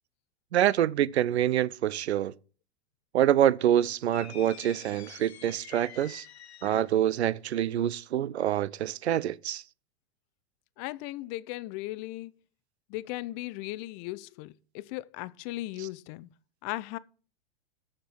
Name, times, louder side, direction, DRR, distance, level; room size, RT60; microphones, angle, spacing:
voice 1, 0.5-2.3 3.1-6.2 6.6-9.6, right 11 dB, 80° right, 0.5 m, -26 dB
sound 1, 4.1-7.0, left 9 dB, 75° left, 1.1 m, -48 dB
voice 2, 10.8-12.3 12.9-16.3 16.6-17.0, left 18 dB, 40° left, 0.6 m, -37 dB
6.7 x 6.7 x 7.4 m
hypercardioid pair, 105°, 32 cm